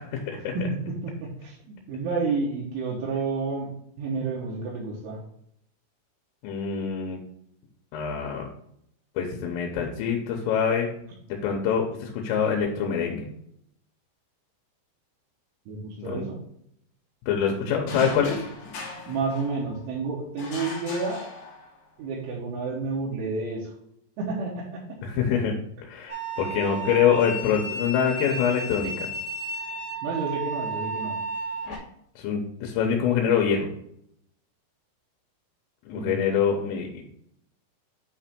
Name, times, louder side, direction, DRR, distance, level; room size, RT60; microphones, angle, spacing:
voice 1, 0.0-0.6 6.4-7.2 7.9-8.5 9.2-10.9 11.3-13.3 16.0-16.2 17.3-18.4 25.0-25.6 25.8-29.1 32.2-33.7 35.9-37.0, left 7 dB, 85° left, 1 dB, 3.5 m, -25 dB
voice 2, 0.5-3.7 4.0-5.2 15.7-16.3 19.1-21.2 22.0-23.7 24.2-24.8 30.0-31.2 35.9-36.3, right 4 dB, 75° right, -4 dB, 3.5 m, -30 dB
sound 1, 17.9-19.9 20.4-21.9, left 4 dB, 60° left, 2.8 m, -39 dB
sound 2, 26.1-31.8, right 2 dB, 35° left, 1.4 m, -33 dB
9.0 x 3.4 x 4.3 m, 0.72 s
omnidirectional pair, 5.9 m